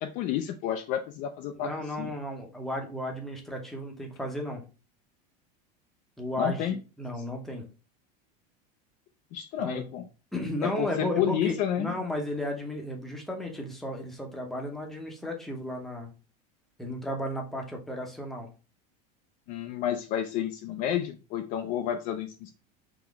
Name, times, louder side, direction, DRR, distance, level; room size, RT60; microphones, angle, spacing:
voice 1, 0.0-1.7 2.0-2.1 6.4-6.8 9.3-10.0 10.6-11.9 19.5-22.5, left 10 dB, 40° left, 6 dB, 0.4 m, -30 dB
voice 2, 1.6-4.6 6.2-7.6 9.6-9.8 10.3-16.1 16.8-18.5, left 1 dB, ahead, 1 dB, 0.7 m, -34 dB
3.7 x 2.9 x 3.5 m, 0.33 s
supercardioid pair, 160°, 21 cm